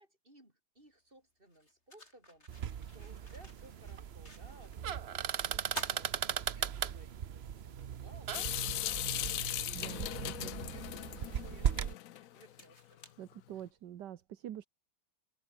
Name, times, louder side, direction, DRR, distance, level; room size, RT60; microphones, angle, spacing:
voice 1, 0.0-13.0, right 1 dB, 30° right, 8.2 m, -61 dB
sound 1, 0.8-0.9 1.5-4.8 5.1-5.2 5.6-7.1 7.6-7.7 9.1-9.2 9.8-14.0, left 2 dB, 35° left, 6.5 m, -53 dB
sound 2, 2.5-11.9, right 8 dB, 50° right, 0.8 m, -38 dB
Water tap faucet / Sink (filling or washing) / Drip, 8.3-12.4, left 14 dB, 65° left, 0.8 m, -38 dB
voice 2, 9.7-10.1 10.4-10.5 13.2-14.7, right 11 dB, 75° right, 1.6 m, -45 dB
open air
omnidirectional pair, 1.9 m